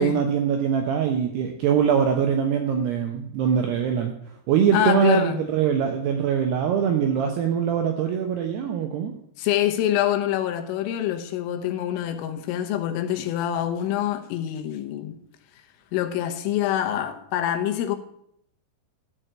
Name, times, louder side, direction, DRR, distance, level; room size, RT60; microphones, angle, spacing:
voice 1, 0.0-4.1 4.5-9.1, right 8 dB, 80° right, 2.4 m, -23 dB
voice 2, 4.7-5.5 9.4-15.2 15.9-18.0, left 11 dB, 85° left, 3.6 m, -25 dB
13.5 x 4.6 x 8.7 m
omnidirectional pair, 5.8 m